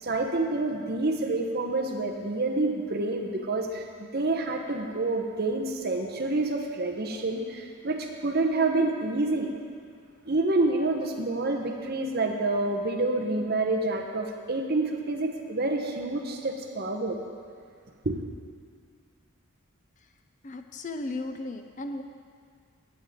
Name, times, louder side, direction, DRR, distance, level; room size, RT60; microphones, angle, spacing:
voice 1, 0.0-9.5 10.2-17.2 18.0-18.2, right 2 dB, 45° right, 3 dB, 0.9 m, -28 dB
voice 2, 20.4-22.0, left 2 dB, 35° left, 6 dB, 0.5 m, -35 dB
15.5 x 9.1 x 3.7 m, 2.1 s
head